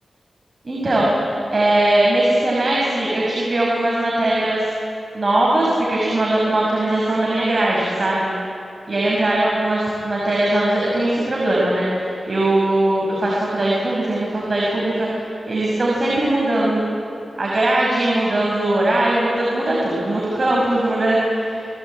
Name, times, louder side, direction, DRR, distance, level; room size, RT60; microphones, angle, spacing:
voice 1, 0.6-1.1 1.5-4.7 5.1-8.3 8.9-11.9 12.3-16.8 17.4-21.7, right 1 dB, 40° right, -4 dB, 6.4 m, -20 dB
28.5 x 20.0 x 9.0 m, 2.7 s
wide cardioid pair, 100°, 0 cm